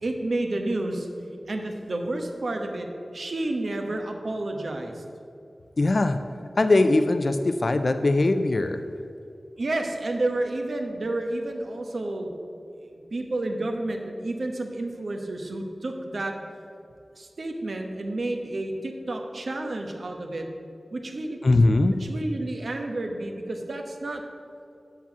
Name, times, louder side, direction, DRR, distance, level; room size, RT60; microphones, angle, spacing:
voice 1, 0.0-1.1 1.5-2.9 3.1-5.0 9.6-12.3 12.8-16.3 17.2-20.5 20.9-21.4 22.0-24.2, right 2 dB, 75° right, 3 dB, 1.0 m, -30 dB
voice 2, 5.8-6.2 6.6-8.8 21.4-22.0, left 2 dB, 60° left, 9 dB, 0.4 m, -21 dB
8.4 x 5.9 x 6.0 m, 2.5 s
wide cardioid pair, 55°, 0 cm